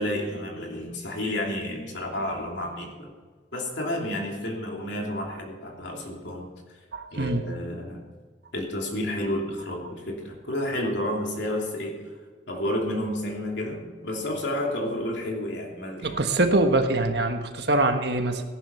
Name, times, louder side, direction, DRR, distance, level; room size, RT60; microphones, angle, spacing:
voice 1, 0.0-3.1 3.5-6.5 7.1-8.0 8.5-12.0 12.5-16.2, left 1 dB, 70° left, 0 dB, 3.1 m, -30 dB
voice 2, 6.9-7.5 16.0-18.4, right 2 dB, 60° right, 6 dB, 1.4 m, -24 dB
17.0 x 11.0 x 5.7 m, 1.5 s
head